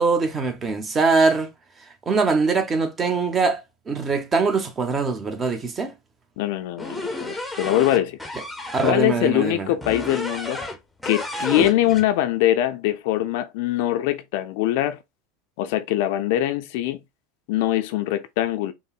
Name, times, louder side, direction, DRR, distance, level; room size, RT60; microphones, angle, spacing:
voice 1, 0.0-1.5 2.1-3.6 3.9-5.9 8.7-9.7, right 4 dB, 25° right, 0.8 m, -22 dB
voice 2, 6.4-8.2 8.8-10.6 11.1-15.0 15.6-17.0 17.5-18.7, left 13 dB, 65° left, 0.4 m, -23 dB
sound 1, 6.8-9.0 9.8-10.8 11.0-12.1, left 1 dB, 5° left, 0.7 m, -31 dB
5.3 x 2.0 x 2.4 m
hypercardioid pair, 95°, 0 cm